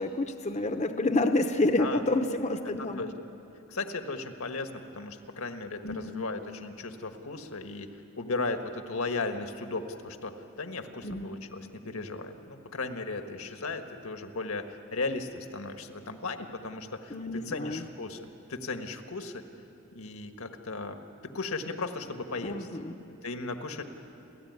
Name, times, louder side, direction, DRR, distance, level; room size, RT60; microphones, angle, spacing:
voice 1, 0.0-3.1 5.8-6.2 11.0-11.3 17.1-17.8 22.4-23.0, left 2 dB, 30° left, 7 dB, 0.8 m, -29 dB
voice 2, 2.8-3.1 3.7-7.9 8.2-14.7 14.9-17.2 17.5-19.4 19.9-22.7 23.2-23.8, left 3 dB, 80° left, 6 dB, 1.6 m, -36 dB
30.0 x 14.0 x 9.6 m, 2.9 s
head